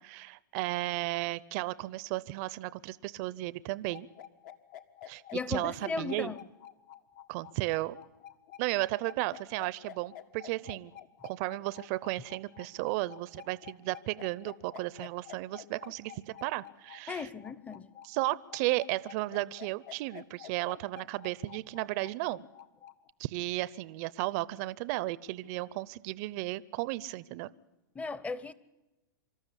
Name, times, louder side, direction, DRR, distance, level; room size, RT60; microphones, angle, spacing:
voice 1, 0.0-4.1 5.1-5.2 5.5-6.3 7.3-8.0 8.6-10.9 11.2-17.3 18.0-22.4 23.2-27.5, right 19 dB, 45° right, 19 dB, 0.7 m, -34 dB
sound 1, 3.9-23.1, left 11 dB, 60° left, 1.5 m, -49 dB
voice 2, 5.3-6.4 17.1-17.9 27.9-28.5, left 4 dB, 10° left, 18 dB, 0.9 m, -36 dB
25.5 x 13.0 x 10.0 m, 1.0 s
hypercardioid pair, 125°, 11 cm